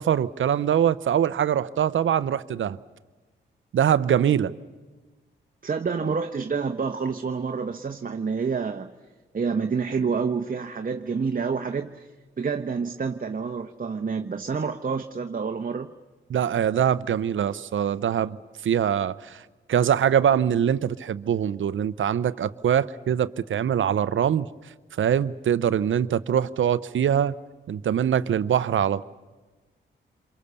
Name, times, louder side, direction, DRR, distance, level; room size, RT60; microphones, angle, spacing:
voice 1, 0.0-2.8 3.7-4.5 16.3-18.4 18.6-19.4 19.7-24.5 25.0-27.3 27.7-29.0, right 9 dB, 75° right, 16 dB, 0.7 m, -23 dB
voice 2, 5.6-8.9 9.3-12.1 12.4-15.9, right 5 dB, 45° right, 5 dB, 1.1 m, -28 dB
27.5 x 23.0 x 6.9 m, 1.3 s
cardioid pair, 60°, 20 cm